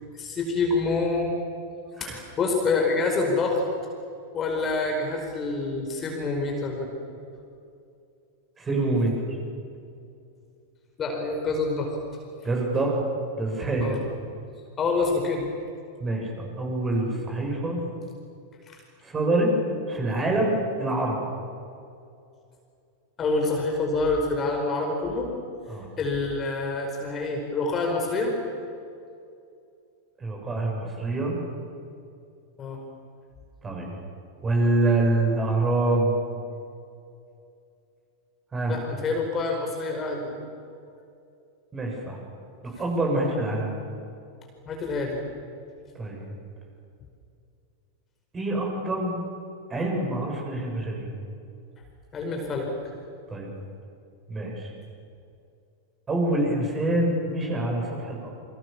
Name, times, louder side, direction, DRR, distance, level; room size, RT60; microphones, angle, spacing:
voice 1, 0.1-1.4 2.0-3.6 4.3-6.9 11.0-11.9 13.8-14.0 14.8-15.5 18.7-18.8 23.2-25.3 26.0-28.3 32.6-32.8 38.7-40.4 42.7-42.8 44.7-45.2 52.1-52.7, left 3 dB, 25° left, 1 dB, 5.0 m, -27 dB
voice 2, 8.6-9.1 12.4-13.0 13.3-14.0 16.0-16.3 16.6-17.8 19.0-19.5 19.9-21.2 25.7-25.9 30.2-31.4 33.6-33.9 34.4-36.1 38.5-38.7 41.7-42.2 42.6-43.7 45.9-46.3 48.3-49.2 49.7-51.1 53.3-53.5 54.3-54.7 56.1-58.3, right 2 dB, 20° right, 0 dB, 7.7 m, -26 dB
29.5 x 25.0 x 7.3 m, 2.5 s
figure-of-eight pair, 90°, 0 cm